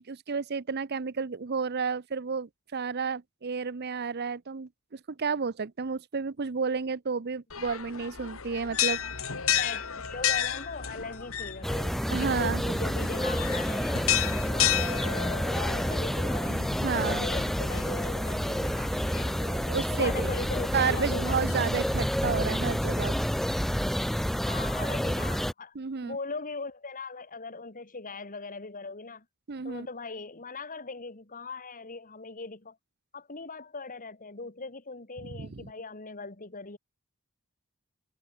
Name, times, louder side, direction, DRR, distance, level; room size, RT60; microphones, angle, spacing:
voice 1, 0.0-9.0 12.1-12.6 16.8-17.3 19.4-20.3 20.7-23.2 25.7-26.2 29.5-29.9 35.3-35.6, right 5 dB, 50° right, 0.7 m, -31 dB
sound 1, 7.5-21.9, left 10 dB, 80° left, 2.5 m, -33 dB
voice 2, 9.6-16.5 16.9-19.3 19.9-21.5 24.5-25.7 26.0-29.2 29.6-32.8 33.1-36.8, left 4 dB, 40° left, 2.6 m, -39 dB
sound 2, 11.6-25.5, equal, ahead, 0.5 m, -29 dB
head